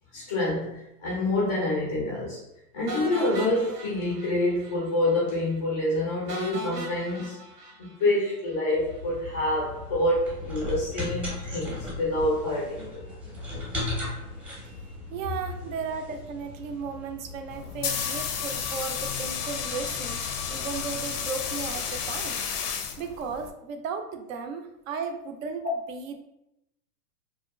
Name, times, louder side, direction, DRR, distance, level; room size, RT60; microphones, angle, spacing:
voice 1, 0.1-2.4 2.7-7.4 7.8-13.0, left 1 dB, 15° left, -6 dB, 0.3 m, -27 dB
sound 1, 2.9-4.8 5.0-5.2 5.5-5.6 6.3-8.6, equal, 90° right, 0.8 m, -38 dB
sound 2, 8.7-22.2, left 2 dB, 10° right, 0.7 m, -38 dB
voice 2, 15.1-20.2 20.5-22.4 23.0-26.2, right 5 dB, 60° right, 6 dB, 0.5 m, -35 dB
sound 3, 17.5-23.5, left 7 dB, 75° left, 0.5 m, -32 dB
2.7 x 2.3 x 2.2 m, 0.86 s
hypercardioid pair, 130°, 45 cm